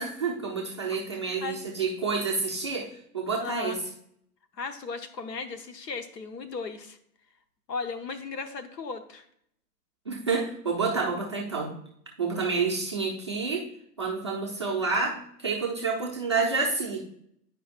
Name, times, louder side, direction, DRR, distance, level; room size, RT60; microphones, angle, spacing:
voice 1, 0.0-2.9 3.1-3.8 10.1-11.7 12.2-13.7 14.0-17.0, right 4 dB, 20° right, -3 dB, 0.3 m, -29 dB
voice 2, 1.1-1.6 3.4-3.8 4.6-7.0 7.7-9.3, left 4 dB, 85° left, 8 dB, 1.0 m, -36 dB
9.8 x 5.0 x 2.4 m, 0.70 s
hypercardioid pair, 130°, 48 cm